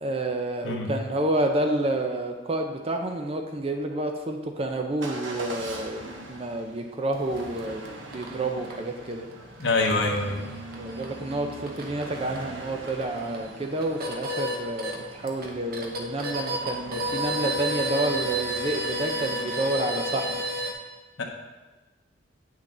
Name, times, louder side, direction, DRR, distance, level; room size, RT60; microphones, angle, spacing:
voice 1, 0.0-7.8 8.1-9.3 10.8-20.3, right 1 dB, 30° right, 4 dB, 0.6 m, -29 dB
Motor vehicle (road) / Engine starting / Accelerating revving vroom, 5.0-20.3, right 2 dB, 75° right, 1.1 m, -42 dB
sound 1, 7.1-20.7, equal, 50° right, 1.1 m, -34 dB
voice 2, 9.6-10.5 21.2-21.3, left 2 dB, 70° left, 0 dB, 1.0 m, -25 dB
8.8 x 6.0 x 3.9 m, 1.2 s
head